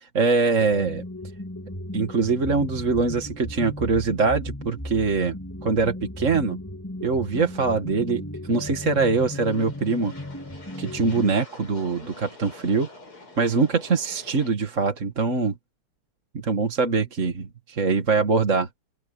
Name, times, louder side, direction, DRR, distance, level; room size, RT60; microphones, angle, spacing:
voice 1, 0.1-1.0 1.9-6.6 7.0-10.1 10.8-12.9 13.4-15.5 16.3-18.7, right 4 dB, 35° right, 2.1 m, -23 dB
sound 1, 0.6-11.4, left 1 dB, 5° left, 3.5 m, -36 dB
sound 2, 8.8-14.5, left 2 dB, 75° left, 9.0 m, -47 dB
open air
omnidirectional pair, 2.4 m